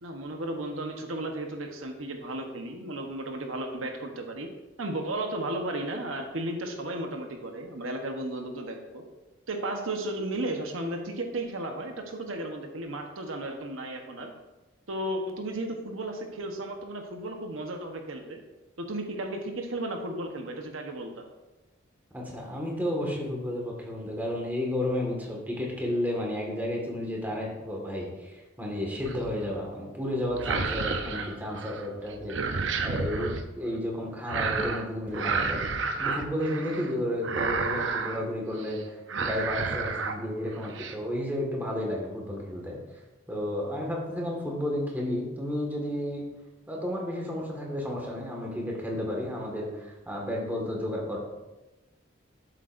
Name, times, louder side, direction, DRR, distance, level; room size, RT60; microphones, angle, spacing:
voice 1, 0.0-4.5 4.8-9.0 9.5-14.3 14.9-18.4 18.8-21.3, right 1 dB, 85° right, 3 dB, 1.1 m, -34 dB
voice 2, 22.1-32.4 32.8-35.7 36.0-42.8 43.3-46.2 46.7-51.2, left 1 dB, 10° right, -2 dB, 1.7 m, -32 dB
sound 1, 29.0-29.5 30.3-31.9 32.1-33.4 34.3-34.9 35.1-36.9 37.2-38.2 38.6-38.8 39.1-40.2 40.5-40.9, right 4 dB, 70° right, 0.7 m, -31 dB
12.0 x 7.6 x 2.6 m, 1.1 s
head